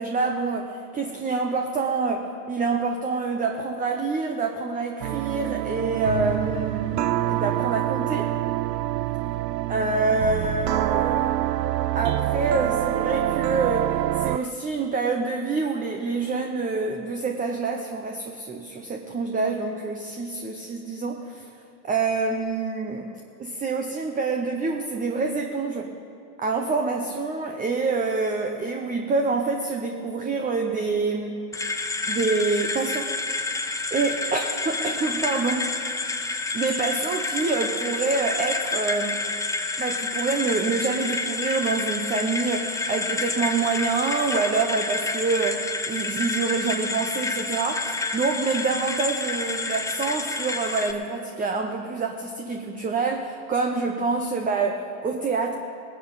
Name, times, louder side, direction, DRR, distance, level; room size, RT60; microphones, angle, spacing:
voice 1, 0.0-8.3 9.7-11.4 11.9-13.9 14.2-21.5 21.8-23.1 23.4-25.9 26.4-31.4 32.1-33.1 33.9-35.8 36.5-39.2 39.8-55.5, right 4 dB, 15° right, 3 dB, 0.8 m, -26 dB
sound 1, 5.0-14.5, right 14 dB, 90° right, 0.5 m, -26 dB
sound 2, 31.5-50.9, left 3 dB, 5° left, 0.6 m, -29 dB
18.5 x 11.0 x 4.0 m, 2.4 s
hypercardioid pair, 95°, 49 cm